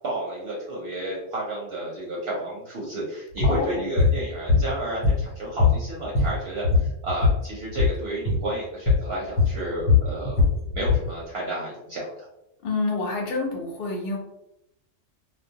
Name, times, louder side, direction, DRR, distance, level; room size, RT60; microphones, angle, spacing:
voice 1, 0.0-10.4 10.7-12.3, right 1 dB, 60° right, -4 dB, 0.7 m, -31 dB
sound 1, 3.4-3.6 4.0-4.2 4.5-5.3 5.6-7.4 7.7-8.0 8.2-8.4 8.9-9.1 9.4-11.1, left 4 dB, 85° left, 1.1 m, -20 dB
voice 2, 3.4-3.9 12.6-14.2, left 3 dB, 55° left, 0 dB, 0.8 m, -28 dB
2.2 x 2.1 x 2.6 m, 0.87 s
omnidirectional pair, 1.3 m